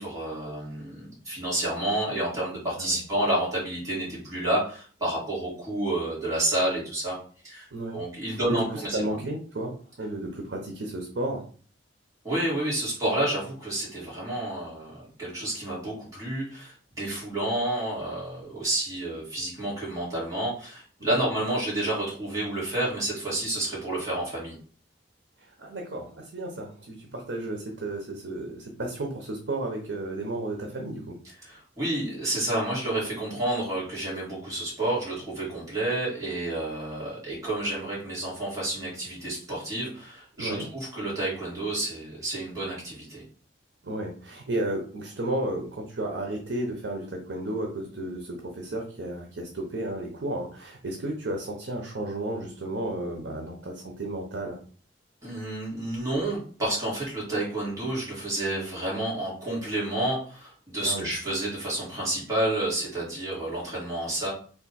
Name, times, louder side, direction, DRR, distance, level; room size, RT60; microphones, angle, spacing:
voice 1, 0.0-7.2 7.4-9.2 12.2-24.6 31.2-43.2 55.2-64.3, right 1 dB, 20° right, -7 dB, 2.1 m, -30 dB
voice 2, 8.3-11.4 21.0-21.2 25.6-31.2 40.4-40.7 43.8-54.6 60.8-61.1, right 1 dB, 70° right, 1 dB, 0.7 m, -33 dB
3.5 x 2.6 x 4.1 m, 0.42 s
head